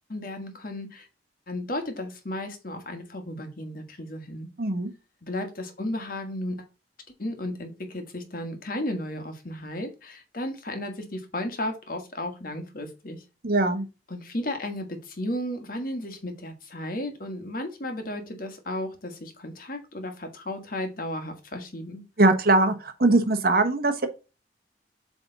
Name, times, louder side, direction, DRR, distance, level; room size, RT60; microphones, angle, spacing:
voice 1, 0.1-1.1 1.5-4.5 5.2-6.6 7.2-13.2 14.1-22.0, left 1 dB, 55° left, 1.5 m, -34 dB
voice 2, 4.6-4.9 13.4-13.8 22.2-24.1, right 2 dB, 55° right, 1.1 m, -21 dB
7.9 x 3.5 x 4.0 m
head